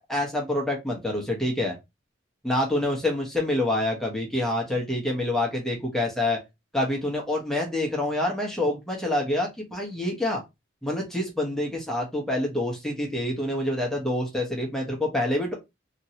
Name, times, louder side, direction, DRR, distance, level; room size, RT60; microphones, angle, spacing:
voice 1, 0.0-1.7 2.4-6.4 6.7-10.4 10.8-15.5, left 1 dB, ahead, -1 dB, 0.9 m, -27 dB
2.9 x 2.7 x 2.8 m, 0.21 s
head